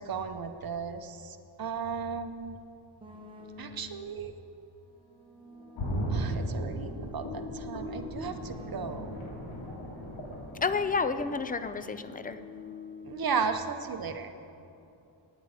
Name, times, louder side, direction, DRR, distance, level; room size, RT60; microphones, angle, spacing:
voice 1, 0.0-2.6 3.6-4.3 6.1-9.1 13.0-14.3, right 6 dB, 45° right, 8 dB, 0.8 m, -35 dB
sound 1, 3.0-4.1 4.9-9.3 10.1-13.5, left 4 dB, 10° right, 1.4 m, -47 dB
sound 2, 5.7-11.6 11.9-12.0, right 1 dB, 70° left, 3.1 m, -36 dB
voice 2, 10.6-12.4, left 4 dB, 20° left, 11 dB, 0.3 m, -30 dB
18.0 x 9.3 x 4.9 m, 2.8 s
wide cardioid pair, 160°, 48 cm